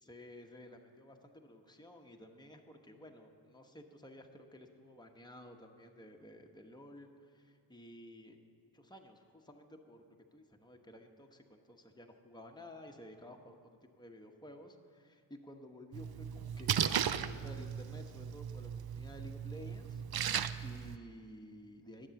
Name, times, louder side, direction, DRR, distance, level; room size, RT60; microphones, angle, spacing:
voice 1, 0.0-8.4 8.7-10.0 10.3-13.6 13.8-22.1, left 1 dB, 10° left, 3 dB, 1.1 m, -53 dB
Splash splatter, 15.9-21.0, right 9 dB, 55° right, 0.5 m, -36 dB
10.0 x 7.5 x 7.0 m, 2.2 s
cardioid pair, 40°, 47 cm